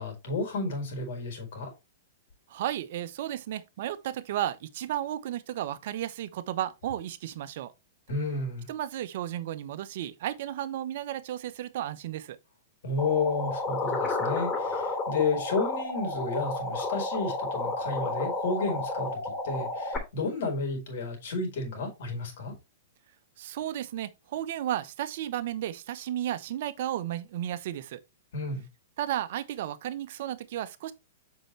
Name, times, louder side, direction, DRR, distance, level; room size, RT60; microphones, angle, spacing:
voice 1, 0.0-1.7 8.1-8.7 12.8-22.5 28.3-28.6, left 3 dB, 60° left, 4.3 m, -31 dB
voice 2, 2.5-7.7 8.7-12.4 23.4-28.0 29.0-30.9, right 12 dB, 55° right, 0.9 m, -33 dB
sound 1, 13.0-20.0, left 2 dB, 20° left, 2.7 m, -31 dB
7.7 x 5.8 x 3.2 m
figure-of-eight pair, 110°, 0 cm